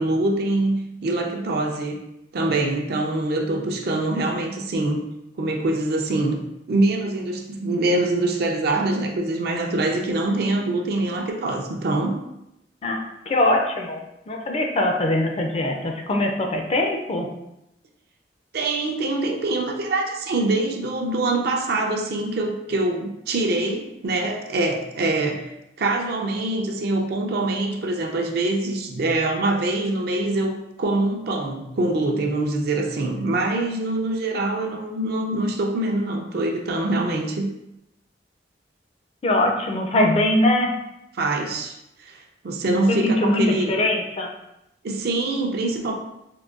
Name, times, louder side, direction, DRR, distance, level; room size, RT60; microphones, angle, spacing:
voice 1, 0.0-2.0 2.3-5.0 5.4-6.4 6.7-12.2 18.5-25.4 25.8-37.5 41.1-42.2 42.4-43.7 44.8-45.9, right 2 dB, 60° right, 2 dB, 0.4 m, -24 dB
voice 2, 12.8-14.0 14.3-17.3 39.2-40.7 42.9-44.3, left 1 dB, 35° left, 2 dB, 0.4 m, -22 dB
3.7 x 2.2 x 2.4 m, 0.86 s
head